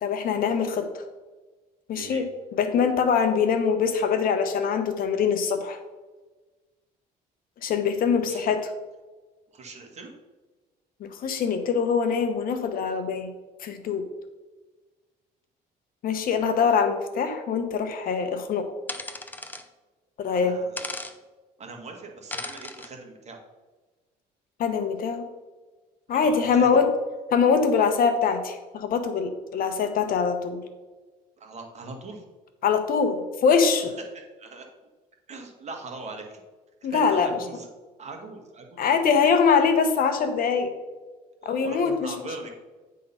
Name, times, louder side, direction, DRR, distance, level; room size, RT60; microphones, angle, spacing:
voice 1, 0.0-0.9 1.9-2.3 2.5-5.8 7.6-8.7 11.0-13.3 13.6-14.0 16.0-18.7 20.2-20.6 24.6-25.3 26.1-26.9 27.3-30.6 32.6-33.9 36.8-37.4 38.8-40.7 41.4-42.1, left 6 dB, 60° left, 7 dB, 1.0 m, -23 dB
voice 2, 1.9-2.2 8.2-8.5 9.5-10.1 20.3-20.9 21.6-23.4 26.1-26.9 31.4-32.2 34.1-34.6 35.3-36.4 36.8-37.7 38.0-38.9 41.4-42.5, right 3 dB, 40° right, 2 dB, 1.6 m, -41 dB
sound 1, 18.9-19.6 20.8-21.1 22.3-22.9, left 2 dB, 10° left, 0.6 m, -36 dB
9.3 x 3.8 x 5.5 m, 1.3 s
cardioid pair, 110°, 17 cm